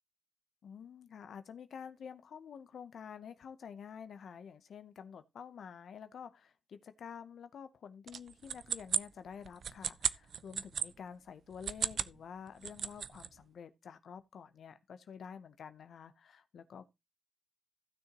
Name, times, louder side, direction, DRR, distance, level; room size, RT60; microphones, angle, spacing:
voice 1, 0.6-16.9, left 7 dB, 70° left, 0.8 m, -49 dB
sound 1, 8.1-10.9 11.5-12.2 12.5-13.3, right 7 dB, 60° right, 0.5 m, -35 dB
15.5 x 6.7 x 2.9 m
cardioid pair, 115°, 0 cm